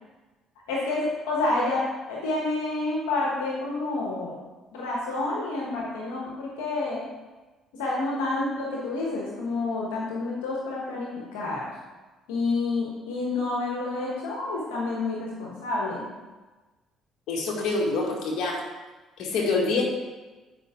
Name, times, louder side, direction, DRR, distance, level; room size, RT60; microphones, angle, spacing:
voice 1, 0.7-4.4 4.7-7.1 7.7-11.7 12.3-16.1, left 2 dB, 90° left, -4 dB, 1.4 m, -29 dB
voice 2, 17.3-18.6 19.2-19.8, left 3 dB, 70° left, -1 dB, 1.8 m, -26 dB
8.7 x 5.4 x 3.7 m, 1.2 s
supercardioid pair, 65°, 0 cm